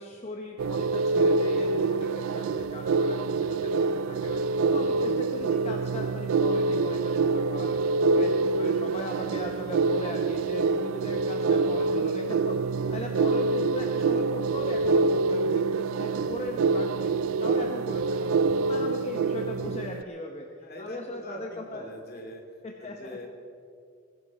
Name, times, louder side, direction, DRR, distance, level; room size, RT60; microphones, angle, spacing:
voice 1, 0.0-17.1 17.4-18.3 18.6-20.5 20.8-21.9 22.6-23.2, left 1 dB, 35° left, 2 dB, 1.0 m, -39 dB
sound 1, 0.6-20.0, right 4 dB, 80° right, 0.4 m, -26 dB
voice 2, 20.6-22.4 22.8-23.3, equal, 50° left, 2 dB, 2.6 m, -42 dB
21.5 x 12.0 x 4.3 m, 2.4 s
head